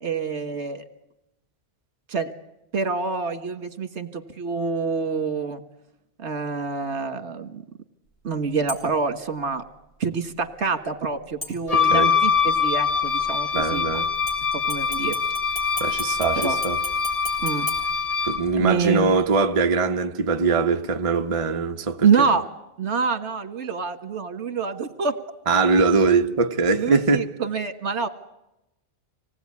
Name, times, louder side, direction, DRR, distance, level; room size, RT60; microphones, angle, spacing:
voice 1, 0.0-0.8 2.1-2.3 2.7-5.6 6.2-7.6 8.2-9.6 10.0-14.0 14.5-15.1 16.4-16.6 17.4-17.7 18.6-19.1 22.0-22.4 22.8-25.2 26.8-28.1, right 5 dB, 70° right, 1.8 m, -26 dB
sound 1, 8.7-9.1 11.4-12.1 14.3-18.7 19.1-19.2, left 1 dB, 50° left, 5.8 m, -38 dB
Wind instrument woodwind instrument, 11.7-18.5, left 6 dB, 35° left, 1.3 m, -23 dB
voice 2, 11.7-12.1 13.5-14.1 15.8-16.8 18.2-22.3 25.5-27.3, right 4 dB, 30° right, 1.0 m, -22 dB
25.5 x 18.5 x 9.6 m
omnidirectional pair, 1.2 m